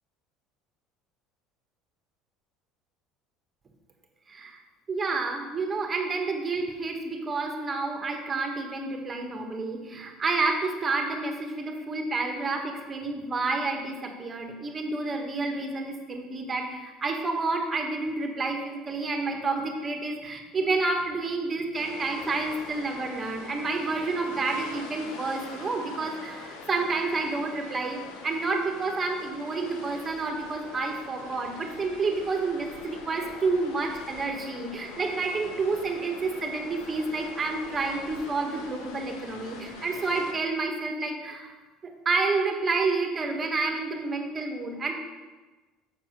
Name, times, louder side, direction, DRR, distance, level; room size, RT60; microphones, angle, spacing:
voice 1, 4.3-4.6 4.9-41.5 41.8-44.9, right 3 dB, 30° right, 3 dB, 1.4 m, -29 dB
sound 1, 21.7-40.3, left 3 dB, 80° left, 1.1 m, -44 dB
7.3 x 4.6 x 6.0 m, 1.2 s
supercardioid pair, 90°, 0 cm